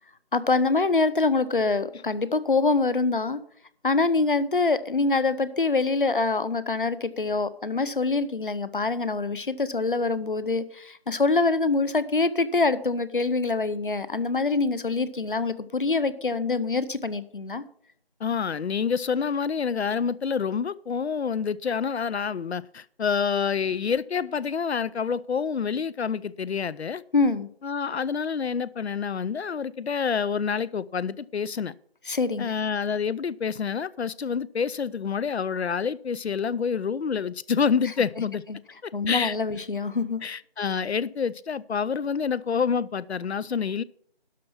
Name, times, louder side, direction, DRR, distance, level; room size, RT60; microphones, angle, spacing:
voice 1, 0.3-3.4 3.8-17.6 27.1-27.5 32.1-32.5 38.5-38.6 38.9-40.2, left 3 dB, 55° left, 0.8 m, -25 dB
voice 2, 18.2-27.0 27.6-31.7 32.4-38.4 38.8-39.4 40.2-43.8, left 6 dB, 90° left, 0.5 m, -27 dB
12.0 x 5.8 x 5.9 m
figure-of-eight pair, 170°, 31 cm